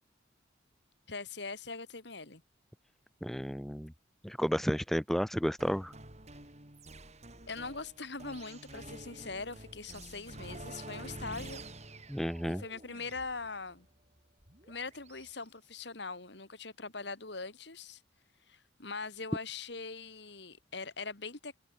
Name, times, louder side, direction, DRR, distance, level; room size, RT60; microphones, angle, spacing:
voice 1, 1.1-2.4 7.4-11.6 12.4-13.9 14.7-18.0 18.5-21.6, left 4 dB, 65° left, 2.5 m, -42 dB
voice 2, 3.2-3.9 4.2-5.9 12.1-12.6, equal, ahead, 1.1 m, -32 dB
sound 1, 5.6-15.3, right 2 dB, 35° right, 5.4 m, -49 dB
head